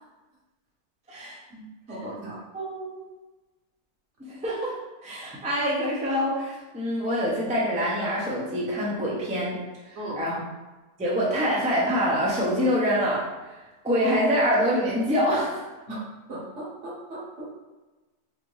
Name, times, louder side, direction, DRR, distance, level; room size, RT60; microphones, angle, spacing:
voice 1, 1.5-2.3 10.0-10.1 15.9-16.0 16.3-17.5, right 1 dB, 55° right, -5 dB, 1.3 m, -37 dB
voice 2, 2.5-3.0 4.2-4.8 5.0-9.6 9.9-10.4 11.0-13.3 13.8-15.6, equal, 10° right, -6 dB, 0.4 m, -25 dB
4.2 x 2.6 x 3.1 m, 1.2 s
omnidirectional pair, 1.6 m